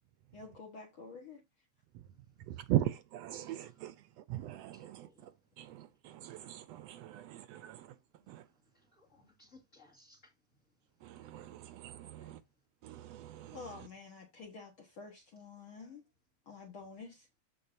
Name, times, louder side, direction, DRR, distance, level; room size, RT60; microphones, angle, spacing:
voice 1, 0.3-1.4 12.0-12.3 13.5-16.0 16.5-17.3, left 4 dB, 50° left, 2.0 m, -49 dB
voice 2, 2.5-3.7 4.5-5.1 5.6-7.9 8.3-8.4 11.0-12.4 12.8-13.6, right 14 dB, 80° right, 1.5 m, -39 dB
voice 3, 3.4-3.9 4.4-4.5 4.7-5.2 8.7-10.2, left 2 dB, 25° left, 2.7 m, -64 dB
14.0 x 4.7 x 2.6 m
omnidirectional pair, 3.3 m